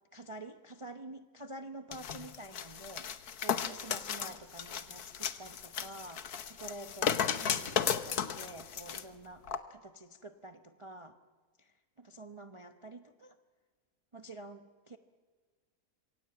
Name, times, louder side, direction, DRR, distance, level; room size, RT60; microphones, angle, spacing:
voice 1, 0.1-11.2 11.6-13.4 14.1-15.0, right 2 dB, 25° right, 7 dB, 0.8 m, -48 dB
sound 1, 1.9-9.0 9.5-9.6, left 8 dB, 80° left, 1.6 m, -35 dB
26.5 x 22.5 x 8.7 m, 1.5 s
omnidirectional pair, 1.6 m